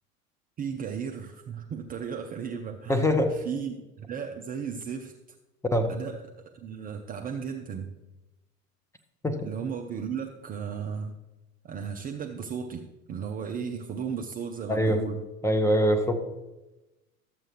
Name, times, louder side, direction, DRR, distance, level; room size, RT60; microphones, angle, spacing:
voice 1, 0.6-3.0 3.3-5.1 5.9-7.9 9.4-11.2 11.6-15.2, right 7 dB, 20° right, 3 dB, 0.5 m, -35 dB
voice 2, 2.9-3.4 5.7-5.9 9.2-9.5 14.7-15.0 15.4-16.1, equal, 5° left, 6 dB, 0.8 m, -23 dB
12.5 x 7.6 x 3.2 m, 1.0 s
figure-of-eight pair, 75°, 42 cm